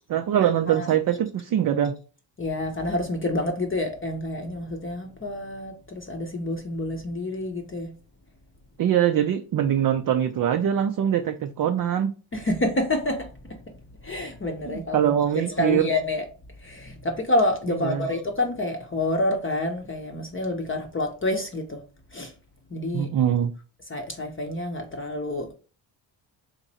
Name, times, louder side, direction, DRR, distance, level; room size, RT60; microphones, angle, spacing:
voice 1, 0.1-2.0 8.8-12.1 14.7-15.9 17.7-18.1 22.9-23.5, right 10 dB, 45° right, 0.5 m, -23 dB
voice 2, 2.4-7.9 12.3-13.3 14.0-16.2 16.6-21.8 22.1-22.3 22.7-23.1 23.9-25.5, left 1 dB, 25° left, 0.7 m, -28 dB
3.0 x 2.5 x 4.0 m
cardioid pair, 85°, 46 cm